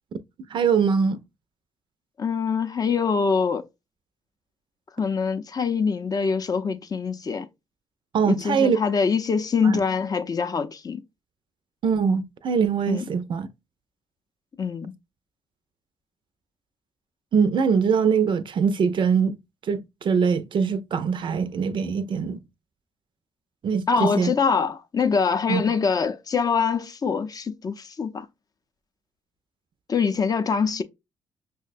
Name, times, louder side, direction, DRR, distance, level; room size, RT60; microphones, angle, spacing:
voice 1, 0.5-1.2 8.1-8.8 9.6-9.8 11.8-13.5 17.3-19.4 19.7-22.4 23.6-24.3 25.5-25.6, right 6 dB, 50° right, 0.4 m, -22 dB
voice 2, 2.2-3.6 5.0-7.5 8.3-11.0 12.9-13.0 14.6-15.0 23.9-28.3 29.9-30.8, left 5 dB, 35° left, 0.5 m, -24 dB
5.6 x 2.1 x 2.4 m
hypercardioid pair, 50°, 11 cm